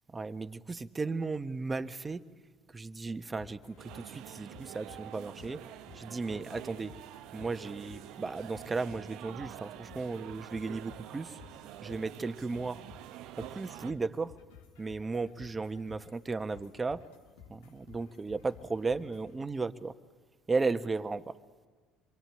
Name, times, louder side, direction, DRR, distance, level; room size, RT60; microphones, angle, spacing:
voice 1, 0.1-2.2 2.7-5.6 5.9-6.9 7.3-11.4 11.8-12.8 13.4-14.4 14.8-17.0 17.5-19.9 20.5-21.2, right 3 dB, 25° right, 10 dB, 1.3 m, -35 dB
sound 1, 3.4-19.4, left 7 dB, 75° left, 1.7 m, -56 dB
sound 2, 3.8-13.9, right 14 dB, 65° right, 0.8 m, -47 dB
27.0 x 24.0 x 9.0 m, 1.4 s
hypercardioid pair, 65°, 0 cm